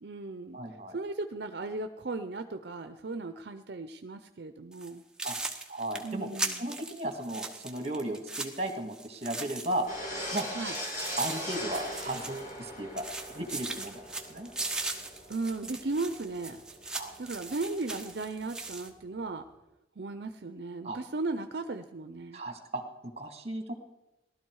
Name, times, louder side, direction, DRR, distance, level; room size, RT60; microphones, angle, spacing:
voice 1, 0.0-0.6 0.9-5.0 6.0-6.7 10.5-10.7 15.3-16.6 17.2-19.4 20.0-22.4, right 3 dB, 65° right, 9 dB, 0.6 m, -36 dB
voice 2, 0.5-1.0 5.2-5.4 5.7-6.3 6.6-9.9 10.3-10.5 11.2-14.0 14.3-14.5 16.9-17.1 20.8-21.0 22.3-23.7, right 1 dB, 35° right, 6 dB, 2.0 m, -35 dB
sound 1, 4.7-4.9 5.2-9.9 10.2-12.7 13.0-18.9, right 3 dB, 5° right, 1.1 m, -39 dB
sound 2, 9.9-18.9 19.2-19.4, equal, 45° left, 5.0 m, -41 dB
18.5 x 12.5 x 4.7 m, 0.96 s
head